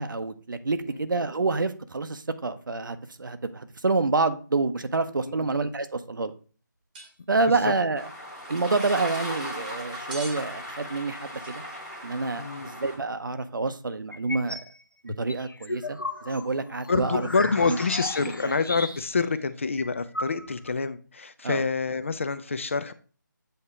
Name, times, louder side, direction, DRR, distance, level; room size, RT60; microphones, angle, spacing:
voice 1, 0.0-6.3 7.3-8.1 8.5-11.6 12.0-14.6 15.0-17.3 17.7-17.8 21.4-21.6, right 3 dB, 75° right, 0.8 m, -28 dB
sound 1, 6.9-7.1 7.4-7.5 8.3-9.0 10.1-10.4 11.3-11.6, right 2 dB, 25° right, 1.0 m, -43 dB
sound 2, 7.9-13.0, equal, ahead, 1.1 m, -37 dB
voice 2, 12.4-12.7 16.9-22.9, left 4 dB, 40° left, 0.4 m, -27 dB
sound 3, 14.1-14.7 15.1-19.3 19.5-19.6 19.8-20.8, left 2 dB, 85° left, 0.9 m, -35 dB
7.9 x 2.9 x 4.7 m
figure-of-eight pair, 165°, 11 cm